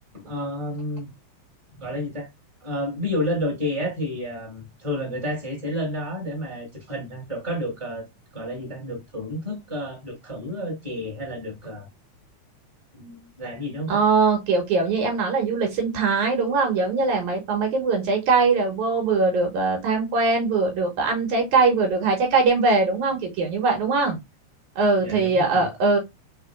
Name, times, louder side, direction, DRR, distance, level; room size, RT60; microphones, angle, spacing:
voice 1, 0.1-1.1 1.8-2.3 2.6-8.1 8.3-11.9 12.9-14.0 25.0-25.7, left 1 dB, 10° right, 2.1 m, -30 dB
voice 2, 13.9-24.2 24.8-26.0, right 4 dB, 70° right, 2.5 m, -21 dB
4.7 x 3.8 x 2.3 m
omnidirectional pair, 3.7 m